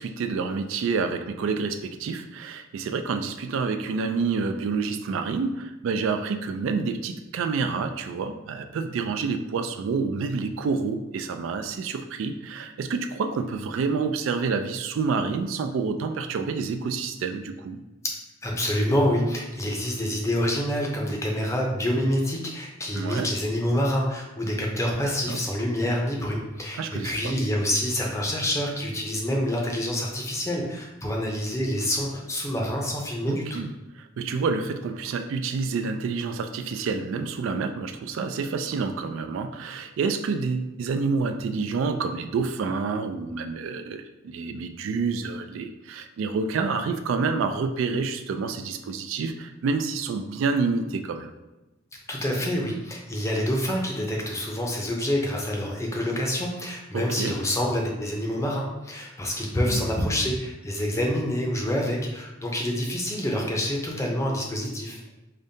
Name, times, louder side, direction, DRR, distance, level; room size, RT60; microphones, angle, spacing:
voice 1, 0.0-17.8 22.9-23.3 25.0-25.4 26.7-27.4 33.3-33.7 34.0-51.3 56.9-57.4 59.7-59.9, right 4 dB, 80° right, 7 dB, 0.3 m, -28 dB
voice 2, 18.4-33.6 52.1-65.0, equal, 15° left, -1 dB, 0.5 m, -27 dB
5.0 x 2.1 x 2.7 m, 1.1 s
head